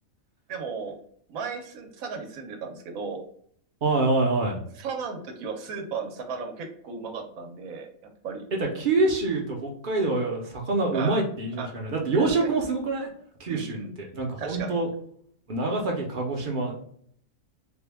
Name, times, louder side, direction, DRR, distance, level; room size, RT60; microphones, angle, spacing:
voice 1, 0.5-0.9 1.3-3.2 4.8-8.5 10.9-11.2 11.6-11.7 12.2-12.5 13.5-13.9 14.4-14.8, right 5 dB, 80° right, 4 dB, 1.1 m, -35 dB
voice 2, 3.8-4.6 8.7-13.1 13.4-14.9 15.5-16.7, right 3 dB, 45° right, 0 dB, 0.7 m, -26 dB
3.5 x 2.2 x 3.4 m, 0.62 s
omnidirectional pair, 1.4 m